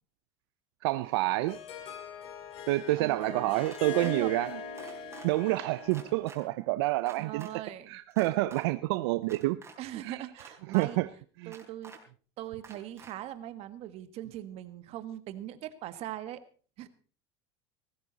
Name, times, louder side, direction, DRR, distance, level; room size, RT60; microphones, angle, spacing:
voice 1, 0.8-1.6 2.7-4.5 5.2-7.5 7.9-9.6 10.0-10.2 10.7-11.1 11.4-11.5, right 18 dB, 75° right, 0.7 m, -28 dB
Harp, 1.1-6.4, left 4 dB, 45° left, 3.9 m, -41 dB
voice 2, 3.0-3.5 4.0-4.3 7.2-8.0 9.8-11.0 11.5-11.9 12.4-16.4 16.8-16.9, right 12 dB, 50° right, 1.6 m, -40 dB
sound 1, 3.6-4.1 4.8-5.3 5.9-6.4 7.1-7.5 8.1-8.6 9.2-9.8 10.4-10.9 11.5-12.0 12.6-13.1, right 5 dB, 20° right, 4.0 m, -49 dB
18.5 x 15.0 x 4.1 m
supercardioid pair, 125°, 13 cm